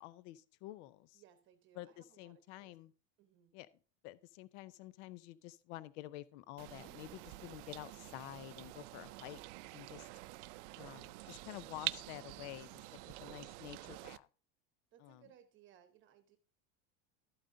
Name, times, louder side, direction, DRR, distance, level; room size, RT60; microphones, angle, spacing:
voice 1, 0.0-1.2 1.7-2.9 3.5-3.7 4.0-9.4 9.7-10.1 10.8-14.3 15.0-15.2, left 15 dB, 65° left, 17 dB, 0.6 m, -50 dB
voice 2, 1.1-2.8 3.2-3.5 13.2-13.3 14.9-16.4, right 10 dB, 30° right, 8 dB, 1.0 m, -65 dB
sound 1, 6.6-14.2, right 20 dB, 65° right, 0.5 m, -47 dB
12.5 x 8.8 x 2.6 m, 0.38 s
cardioid pair, 165°, 38 cm